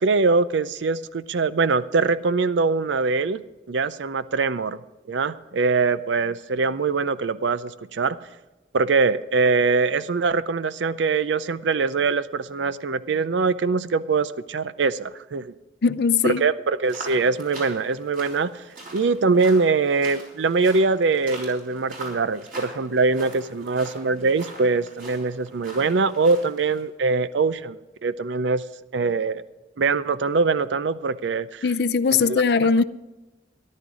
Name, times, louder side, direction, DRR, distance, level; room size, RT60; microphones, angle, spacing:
voice 1, 0.0-3.4 3.7-4.8 5.1-8.2 8.7-15.5 16.2-18.6 18.9-28.6 28.9-29.4 29.8-31.6 32.3-32.4, right 4 dB, 75° right, 0.5 m, -23 dB
voice 2, 15.8-16.4 31.6-32.8, left 5 dB, 60° left, 0.4 m, -20 dB
sound 1, 16.8-26.8, right 2 dB, 45° right, 3.9 m, -42 dB
14.0 x 11.5 x 4.9 m
head